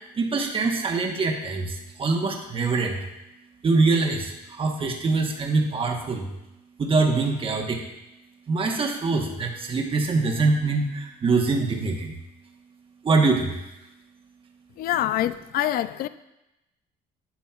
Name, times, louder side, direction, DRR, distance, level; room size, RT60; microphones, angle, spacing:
voice 1, 0.1-3.0 3.6-6.3 6.8-7.8 8.5-12.1 13.0-13.6, right 3 dB, 35° right, 2 dB, 1.1 m, -24 dB
voice 2, 14.8-16.1, left 12 dB, 60° left, 14 dB, 0.4 m, -25 dB
10.0 x 7.1 x 2.4 m, 0.93 s
cardioid pair, 110°, 17 cm